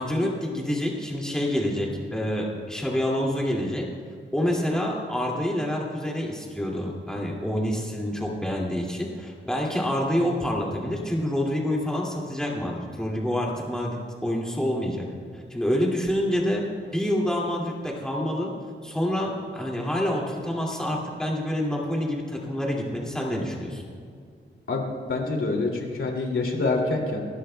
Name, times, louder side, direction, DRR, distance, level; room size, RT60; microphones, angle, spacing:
voice 1, 0.0-3.9 4.3-15.0 15.3-16.7 16.9-18.5 18.8-23.8, left 1 dB, 5° left, -3 dB, 2.2 m, -27 dB
voice 2, 24.7-27.3, left 3 dB, 90° left, 0 dB, 2.4 m, -26 dB
28.5 x 12.0 x 2.2 m, 2.2 s
wide cardioid pair, 160°, 20 cm